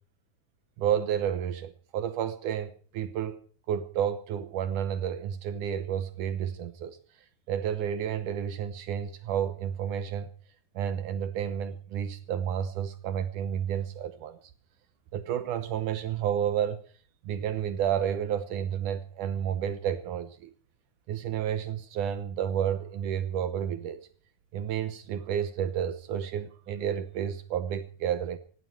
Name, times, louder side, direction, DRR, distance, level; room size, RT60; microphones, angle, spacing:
voice 1, 0.8-3.4 3.7-7.0 7.5-10.3 10.8-14.4 15.1-16.8 17.2-20.5 21.1-24.1 24.5-28.4, right 9 dB, 70° right, 2.2 m, -31 dB
17.0 x 16.0 x 4.6 m
omnidirectional pair, 4.2 m